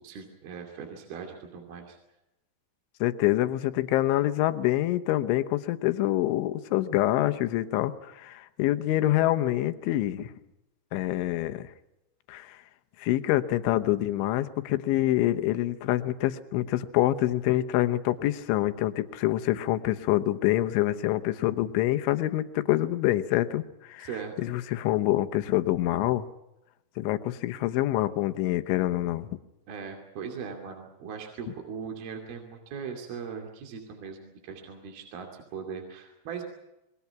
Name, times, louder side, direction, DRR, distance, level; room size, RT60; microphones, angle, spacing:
voice 1, 0.0-2.0 24.0-24.3 29.7-36.4, right 6 dB, 55° right, 3 dB, 4.2 m, -39 dB
voice 2, 3.0-10.3 10.9-11.7 12.3-12.6 13.0-24.1 24.4-26.3 27.0-29.3, left 15 dB, 80° left, 10 dB, 3.5 m, -26 dB
28.5 x 22.0 x 5.8 m, 0.92 s
omnidirectional pair, 5.5 m